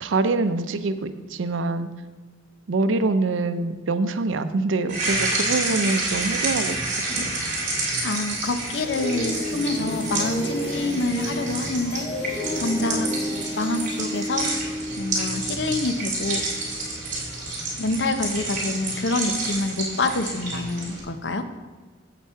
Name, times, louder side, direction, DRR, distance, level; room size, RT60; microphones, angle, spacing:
voice 1, 0.0-1.9 2.7-7.1, right 3 dB, 80° right, 10 dB, 0.6 m, -25 dB
sound 1, 4.9-21.0, right 2 dB, 40° right, 2.9 m, -29 dB
sound 2, 7.8-17.0, left 1 dB, 30° left, 1.4 m, -32 dB
voice 2, 8.0-13.1 13.6-14.5 15.0-16.4 17.8-21.5, left 2 dB, 65° left, 8 dB, 0.7 m, -27 dB
8.0 x 7.7 x 4.5 m, 1.4 s
head